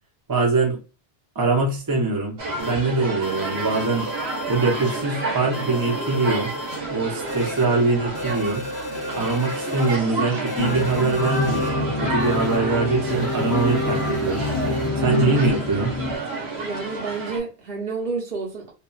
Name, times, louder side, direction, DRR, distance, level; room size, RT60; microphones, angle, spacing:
voice 1, 0.3-0.8 1.3-4.1 4.5-6.5 6.9-8.6 9.1-14.4 15.0-15.9, right 3 dB, 25° right, 0.7 m, -23 dB
sound 1, 2.4-17.4, right 3 dB, 85° right, 1.2 m, -30 dB
sound 2, 2.6-2.7 3.2-5.0 5.5-6.8 7.3-7.6 8.1-10.0 10.5-11.7 12.2-12.6 13.1-14.9, left 3 dB, 75° left, 0.8 m, -35 dB
sound 3, 10.6-16.2, left 2 dB, 50° left, 0.4 m, -26 dB
voice 2, 16.6-18.7, right 4 dB, 65° right, 1.1 m, -30 dB
2.7 x 2.4 x 2.3 m
omnidirectional pair, 1.0 m